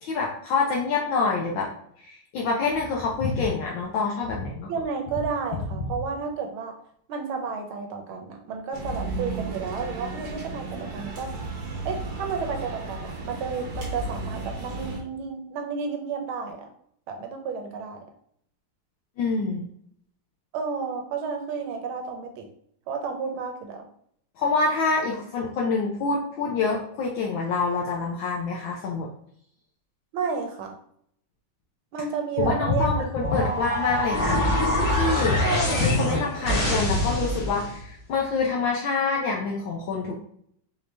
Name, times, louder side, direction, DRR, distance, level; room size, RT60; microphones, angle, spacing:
voice 1, 0.0-1.7 2.0-4.7 19.2-19.6 24.4-29.1 32.4-34.6 34.9-40.1, left 4 dB, 70° left, -1 dB, 1.3 m, -26 dB
voice 2, 4.7-6.8 7.1-11.4 11.8-16.7 17.1-18.0 20.5-22.5 22.9-23.9 30.1-30.8 31.9-33.7 35.4-35.9, right 5 dB, 80° right, 4 dB, 1.6 m, -31 dB
sound 1, 8.7-15.0, right 3 dB, 50° right, 1.4 m, -34 dB
sound 2, 33.2-37.8, left 1 dB, 40° left, 1.4 m, -25 dB
4.9 x 2.7 x 3.2 m, 0.67 s
omnidirectional pair, 2.3 m